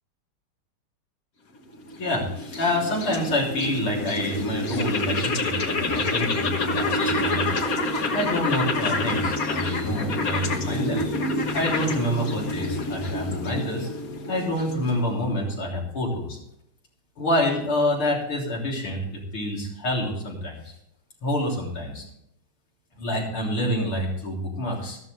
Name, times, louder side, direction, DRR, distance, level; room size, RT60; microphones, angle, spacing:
sound 1, 1.7-15.2, left 2 dB, 45° left, 1.6 m, -27 dB
voice 1, 2.0-7.6 8.1-11.0 11.5-13.9 14.3-16.4 17.2-20.7 21.2-22.0 23.0-25.0, left 1 dB, 75° left, -2 dB, 4.3 m, -27 dB
13.5 x 13.5 x 3.4 m, 0.77 s
omnidirectional pair, 2.4 m